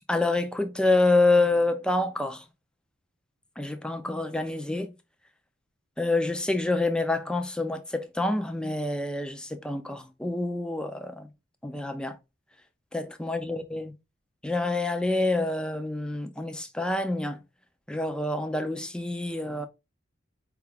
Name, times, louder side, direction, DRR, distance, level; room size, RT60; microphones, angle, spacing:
voice 1, 0.1-2.4 3.6-4.9 6.0-11.3 11.6-12.2 12.9-13.9 14.4-17.4 17.9-19.7, left 2 dB, 5° left, 0.3 m, -27 dB
4.7 x 2.3 x 3.3 m
head